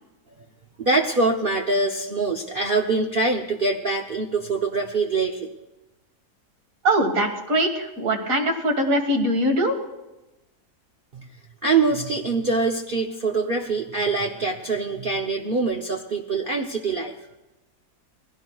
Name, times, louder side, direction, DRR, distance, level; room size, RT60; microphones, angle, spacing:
voice 1, 0.8-5.5 11.1-11.3 11.6-17.1, right 3 dB, 45° right, 1 dB, 0.8 m, -24 dB
voice 2, 6.8-9.8, right 1 dB, 60° right, 4 dB, 2.0 m, -22 dB
21.0 x 16.0 x 2.3 m, 1.0 s
omnidirectional pair, 1.7 m